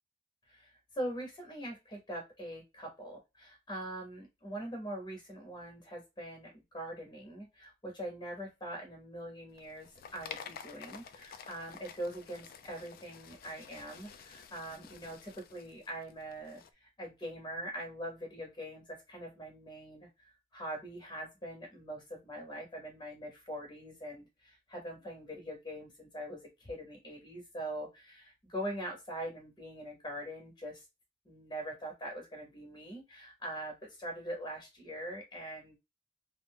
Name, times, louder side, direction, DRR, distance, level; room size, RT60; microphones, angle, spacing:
voice 1, 0.5-30.9 31.3-35.8, right 1 dB, 20° left, 1 dB, 0.8 m, -43 dB
sound 1, 9.5-16.7, left 7 dB, 50° left, 0.3 m, -50 dB
2.4 x 2.0 x 3.4 m, 0.23 s
head